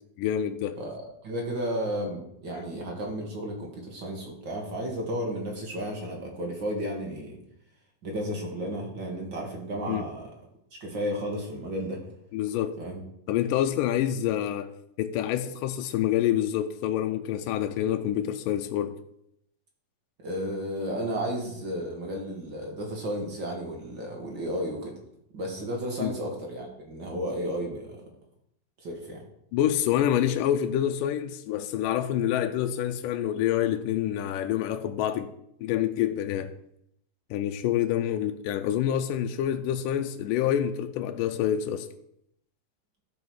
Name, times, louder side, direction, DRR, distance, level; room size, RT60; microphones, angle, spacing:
voice 1, 0.2-0.8 9.9-10.1 12.3-12.8 13.3-19.0 26.0-26.1 29.5-35.3 35.6-36.5 37.3-41.9, left 11 dB, 80° left, 2.1 m, -27 dB
voice 2, 0.8-7.4 8.0-10.3 10.8-12.0 12.8-13.0 20.2-24.9 25.3-28.0 28.8-29.2, equal, 40° right, 2.0 m, -33 dB
12.0 x 5.1 x 6.2 m
omnidirectional pair, 4.0 m